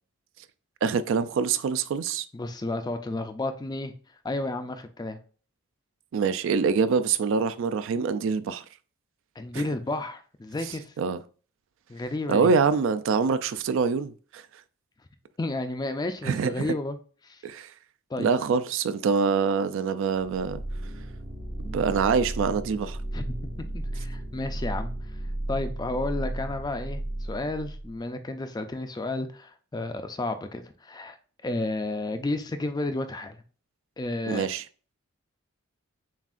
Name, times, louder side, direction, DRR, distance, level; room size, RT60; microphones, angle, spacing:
voice 1, 0.8-2.2 6.1-8.6 9.5-9.6 10.6-11.2 12.3-14.4 16.2-16.7 17.4-17.7 18.2-20.6 21.6-23.0 34.3-34.6, right 5 dB, 60° right, 0.3 m, -25 dB
voice 2, 2.3-3.9 4.2-5.2 9.4-10.9 11.9-12.5 15.4-17.0 17.2-17.4 18.1-18.3 23.1-24.9 25.5-31.2 31.4-33.4 34.0-34.5, left 2 dB, 20° left, 0.3 m, -32 dB
sound 1, 20.2-28.0, right 1 dB, 80° right, 1.5 m, -34 dB
7.1 x 2.4 x 2.4 m
head